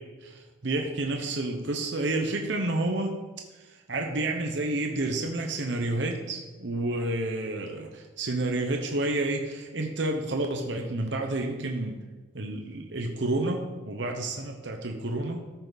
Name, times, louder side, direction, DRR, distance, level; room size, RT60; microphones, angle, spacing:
voice 1, 0.0-3.2 3.5-12.0 12.3-15.5, right 2 dB, 70° right, 3 dB, 0.9 m, -30 dB
13.5 x 5.8 x 4.1 m, 1.3 s
head